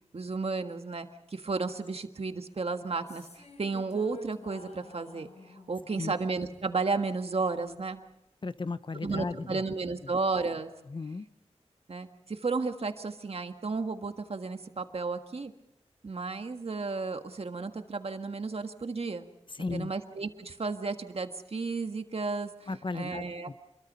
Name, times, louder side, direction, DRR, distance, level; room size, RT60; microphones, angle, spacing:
voice 1, 0.1-5.3 5.7-8.0 9.0-10.7 11.9-15.5 16.0-19.2 19.7-22.7 22.9-23.5, right 4 dB, 60° right, 1.6 m, -33 dB
sound 1, 2.8-7.3, left 2 dB, 75° left, 4.6 m, -52 dB
voice 2, 8.4-9.6 10.9-11.3 19.5-19.9 22.7-23.5, left 3 dB, 45° left, 0.8 m, -35 dB
27.5 x 22.5 x 5.5 m
wide cardioid pair, 80°, 11 cm